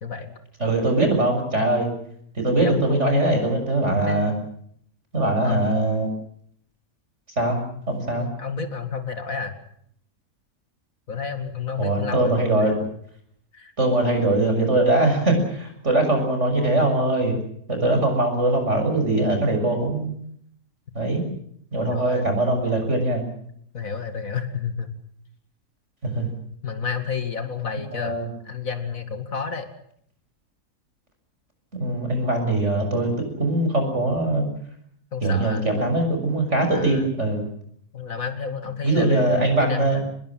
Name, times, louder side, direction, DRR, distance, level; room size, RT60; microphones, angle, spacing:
voice 1, 0.6-1.9 2.4-4.3 5.1-6.1 7.4-7.6 7.9-8.3 11.8-12.7 13.8-17.4 17.7-20.1 20.9-21.3 21.7-23.3 26.0-26.3 27.9-28.3 31.7-34.5 35.2-37.5 38.8-40.0, right 2 dB, 45° right, 4 dB, 7.1 m, -22 dB
voice 2, 2.6-3.4 4.1-4.4 5.4-5.6 8.2-9.5 11.1-12.8 13.5-13.7 18.0-18.1 21.9-22.3 23.7-24.9 26.6-28.2 28.4-29.7 35.1-35.7 36.7-37.1 37.9-40.0, left 6 dB, 60° left, 8 dB, 2.6 m, -30 dB
26.0 x 21.0 x 7.5 m, 0.67 s
omnidirectional pair, 1.6 m